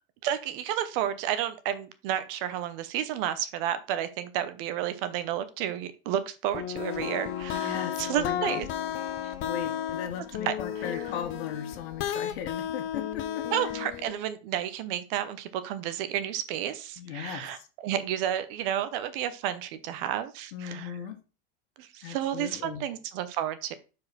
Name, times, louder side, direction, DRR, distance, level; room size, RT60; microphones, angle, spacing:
voice 1, 0.2-8.7 9.2-9.3 10.5-11.0 13.5-21.0 21.8-23.7, right 11 dB, 60° right, 12 dB, 1.0 m, -31 dB
sound 1, 6.5-14.1, left 10 dB, 40° left, 0.8 m, -33 dB
voice 2, 7.5-8.6 9.4-13.7 17.0-17.7 20.5-21.2 22.0-22.8, left 9 dB, 75° left, 6 dB, 1.5 m, -38 dB
6.3 x 4.8 x 4.2 m, 0.33 s
supercardioid pair, 145°, 32 cm